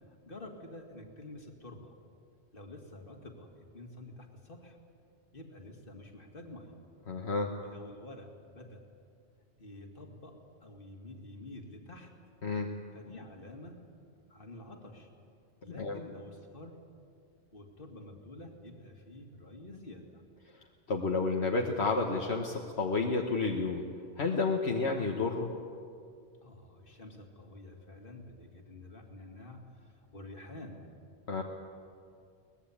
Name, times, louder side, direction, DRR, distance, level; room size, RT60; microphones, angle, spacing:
voice 1, 0.3-2.0 2.5-4.8 5.3-6.8 7.6-8.8 9.6-12.1 12.9-13.9 14.3-15.1 15.6-16.8 17.5-20.2 26.4-30.8, left 1 dB, 55° left, 3 dB, 2.6 m, -49 dB
voice 2, 7.1-7.5 12.4-12.7 15.7-16.0 20.9-23.8 24.2-25.5 31.3-31.4, left 3 dB, 75° left, 1 dB, 1.6 m, -30 dB
23.0 x 19.5 x 8.7 m, 2.3 s
omnidirectional pair, 1.1 m